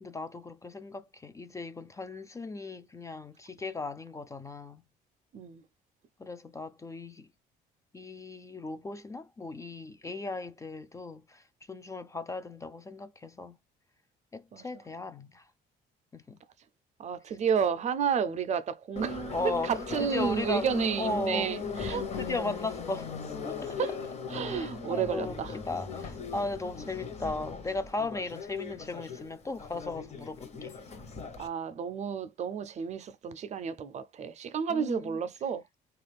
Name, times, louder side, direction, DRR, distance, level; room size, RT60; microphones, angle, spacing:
voice 1, 0.0-4.8 6.2-7.3 7.9-13.5 14.3-15.4 16.1-16.4 19.3-19.7 20.0-20.7 21.0-21.5 21.9-23.1 23.4-23.8 24.4-25.4 25.6-30.7 34.7-35.2, left 3 dB, 20° left, 0.4 m, -37 dB
voice 2, 17.0-22.1 23.8-23.9 24.3-25.6 31.4-35.6, right 7 dB, 45° right, 0.5 m, -31 dB
Subway metro underground, 19.0-31.5, left 4 dB, 40° left, 0.9 m, -38 dB
3.5 x 2.4 x 3.3 m
cardioid pair, 110°, 17 cm